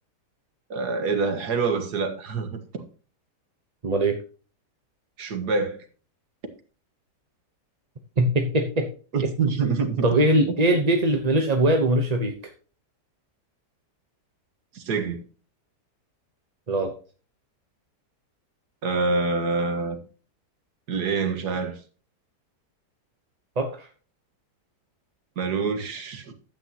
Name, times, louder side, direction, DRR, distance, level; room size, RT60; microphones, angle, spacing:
voice 1, 0.7-2.8 5.2-5.8 9.1-10.1 14.7-15.2 18.8-20.0 20.9-21.8 25.4-26.3, right 4 dB, 70° right, 2.0 m, -26 dB
voice 2, 3.8-4.2 8.2-8.9 9.2-9.3 10.0-12.3 16.7-16.9 23.6-23.9, right 1 dB, 30° right, 0.9 m, -21 dB
12.0 x 8.8 x 2.9 m
omnidirectional pair, 1.8 m